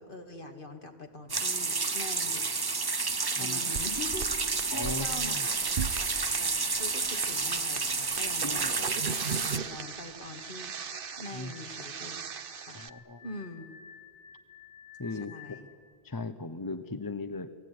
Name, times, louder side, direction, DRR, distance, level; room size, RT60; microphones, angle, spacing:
voice 1, 0.0-2.5 3.4-4.3 4.7-5.7 6.0-9.0 9.4-10.7 11.2-12.8 13.2-13.7 15.2-15.6, left 2 dB, 55° left, 4 dB, 2.4 m, -43 dB
sound 1, 1.3-9.6, right 4 dB, 25° right, 0.7 m, -30 dB
sound 2, 3.5-12.9, right 7 dB, 60° right, 1.0 m, -39 dB
voice 2, 4.7-5.4 8.4-8.8 11.3-11.5 12.7-13.2 15.0-15.3 16.0-17.5, left 2 dB, 20° left, 10 dB, 0.8 m, -37 dB
sound 3, 5.4-15.6, left 8 dB, 85° left, 6.8 m, -53 dB
29.0 x 18.0 x 9.5 m, 2.1 s
omnidirectional pair, 1.0 m